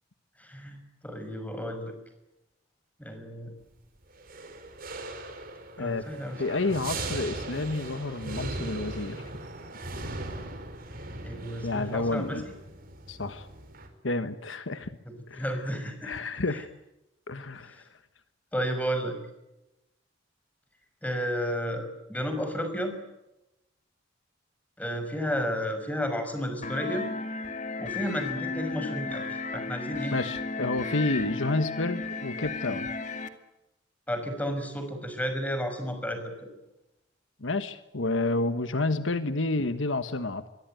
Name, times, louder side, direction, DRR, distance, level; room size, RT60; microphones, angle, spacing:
voice 1, 0.4-1.9 3.0-3.5 5.8-6.4 11.2-12.5 15.0-16.1 16.5-16.6 17.7-17.8 18.5-19.2 21.0-23.0 24.8-27.1 27.8-30.2 34.1-36.5, equal, 10° left, 7 dB, 5.9 m, -32 dB
sound 1, 4.1-13.9, right 2 dB, 50° right, 4.6 m, -39 dB
voice 2, 6.4-9.2 11.6-12.4 13.1-13.5 14.0-14.9 15.3-15.4 16.0-16.7 17.3-17.8 30.1-32.9 37.4-40.5, left 2 dB, 75° left, 11 dB, 1.4 m, -30 dB
sound 2, 26.6-33.3, left 3 dB, 40° left, 2.3 m, -34 dB
25.5 x 23.0 x 9.3 m, 0.92 s
head